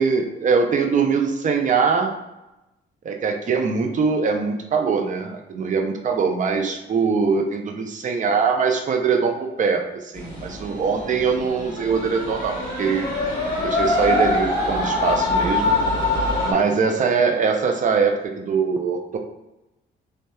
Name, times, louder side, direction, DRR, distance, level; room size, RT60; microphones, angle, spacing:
voice 1, 0.0-2.2 3.0-13.1 13.6-15.7 16.4-19.2, right 5 dB, 40° right, 3 dB, 0.5 m, -22 dB
sound 1, 10.1-16.5, left 2 dB, 25° left, 1.1 m, -24 dB
2.8 x 2.2 x 2.2 m, 0.95 s
cardioid pair, 90°, 20 cm